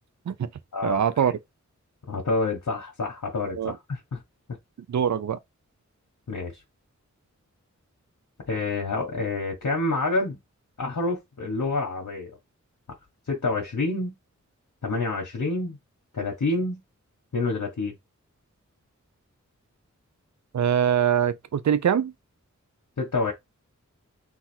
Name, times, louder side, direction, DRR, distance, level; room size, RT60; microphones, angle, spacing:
voice 1, 0.8-1.3 3.6-3.7 4.9-5.4 20.5-22.1, right 9 dB, 65° right, 0.5 m, -23 dB
voice 2, 2.1-4.2 6.3-6.6 8.5-10.4 10.8-12.3 13.3-14.1 14.8-15.8 16.1-16.8 17.3-17.9 23.0-23.3, left 3 dB, 75° left, 1.2 m, -27 dB
4.0 x 2.5 x 4.3 m
wide cardioid pair, 85°, 30 cm